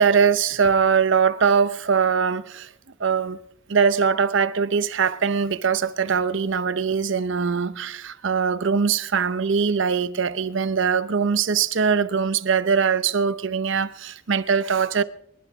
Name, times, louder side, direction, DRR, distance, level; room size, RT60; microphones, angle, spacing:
voice 1, 0.0-2.7 3.0-3.4 3.7-15.0, right 6 dB, 65° right, 0.7 m, -21 dB
25.0 x 11.5 x 3.6 m
head